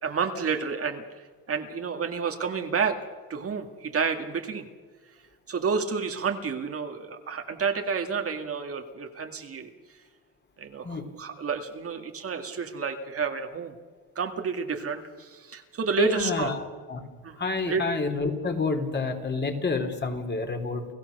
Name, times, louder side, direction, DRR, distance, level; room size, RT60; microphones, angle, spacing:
voice 1, 0.0-3.0 3.3-4.7 5.5-9.7 10.6-13.7 14.2-16.5 17.2-17.4 17.6-17.8, right 5 dB, 40° right, 5 dB, 2.0 m, -30 dB
voice 2, 16.0-17.0 17.4-20.9, left 3 dB, 30° left, 4 dB, 3.4 m, -29 dB
30.0 x 15.5 x 6.6 m, 1.4 s
cardioid pair, 105°, 37 cm